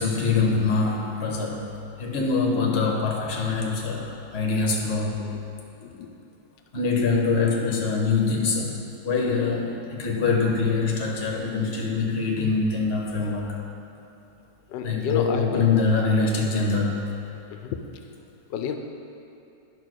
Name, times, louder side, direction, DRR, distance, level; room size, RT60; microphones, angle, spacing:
voice 1, 0.0-1.7 2.0-5.2 6.7-13.6 14.8-17.0, left 4 dB, 40° left, -1 dB, 1.4 m, -24 dB
voice 2, 5.8-6.1 14.7-15.7 17.5-17.8 18.5-18.8, left 7 dB, 90° left, 5 dB, 1.3 m, -32 dB
10.5 x 5.4 x 6.3 m, 2.9 s
omnidirectional pair, 1.9 m